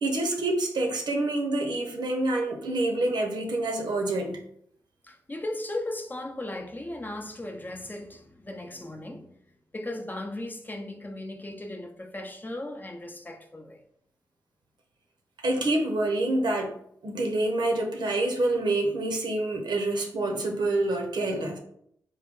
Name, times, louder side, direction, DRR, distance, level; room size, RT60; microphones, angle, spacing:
voice 1, 0.0-4.4 15.4-16.7 17.0-21.6, right 2 dB, 70° right, 0.8 m, -27 dB
voice 2, 5.0-9.4 9.7-13.8, left 1 dB, 25° left, 0.6 m, -37 dB
3.6 x 2.2 x 3.6 m
supercardioid pair, 45°, 8 cm